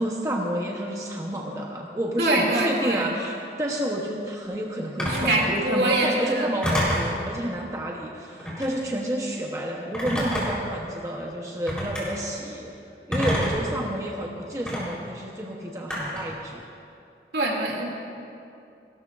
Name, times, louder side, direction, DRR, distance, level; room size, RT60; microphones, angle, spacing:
voice 1, 0.0-12.7 13.1-16.6, equal, 20° right, -1 dB, 0.9 m, -30 dB
voice 2, 2.2-3.1 5.0-6.5 17.3-17.9, right 2 dB, 70° right, -1 dB, 2.6 m, -24 dB
Telephone, 5.0-5.3 6.6-7.1 8.4-8.8 9.9-10.7 11.7-12.0 13.1-13.7 14.7-14.8 15.9-16.3, equal, 5° left, 3.9 m, -26 dB
29.5 x 13.0 x 2.5 m, 2.6 s
head